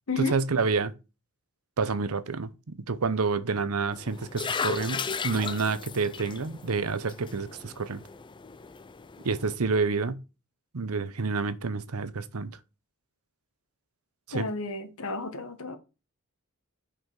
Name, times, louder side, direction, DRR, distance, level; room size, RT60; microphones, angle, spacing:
voice 1, 0.2-0.9 1.8-8.0 9.2-10.2 10.7-12.6 14.3-14.5, right 4 dB, 70° right, 0.8 m, -28 dB
sound 1, 3.9-9.6, left 5 dB, 20° left, 0.4 m, -36 dB
voice 2, 14.3-15.8, left 4 dB, 65° left, 1.5 m, -32 dB
5.7 x 5.2 x 6.5 m
head